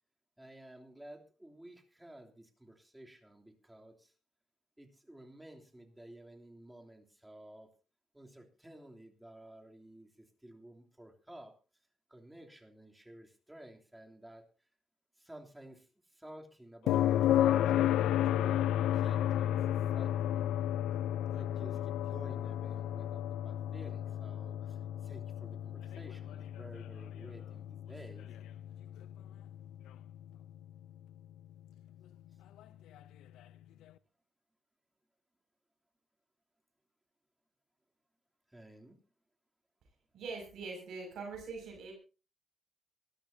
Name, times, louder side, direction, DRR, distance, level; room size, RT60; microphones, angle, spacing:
voice 1, 0.4-4.1 4.8-7.7 8.1-11.5 12.1-14.5 15.2-18.6 18.9-19.7 19.9-21.1 21.4-28.3 38.5-39.0, right 1 dB, 10° right, 2 dB, 3.2 m, -53 dB
sound 1, 16.9-30.7 33.0-33.1, left 11 dB, 85° left, 0.7 m, -32 dB
voice 2, 40.1-41.9, right 4 dB, 70° right, 1 dB, 6.4 m, -43 dB
24.0 x 13.5 x 2.8 m, 0.33 s
cardioid pair, 90°, 0 cm